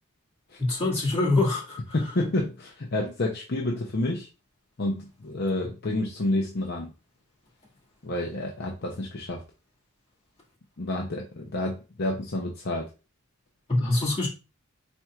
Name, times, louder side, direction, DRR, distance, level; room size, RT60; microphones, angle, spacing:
voice 1, 0.6-1.8 13.7-14.3, left 2 dB, 25° left, 1.9 m, -24 dB
voice 2, 1.9-4.3 4.8-6.9 8.0-9.4 10.8-12.9, left 1 dB, 50° left, 0.6 m, -29 dB
4.4 x 4.2 x 2.4 m
head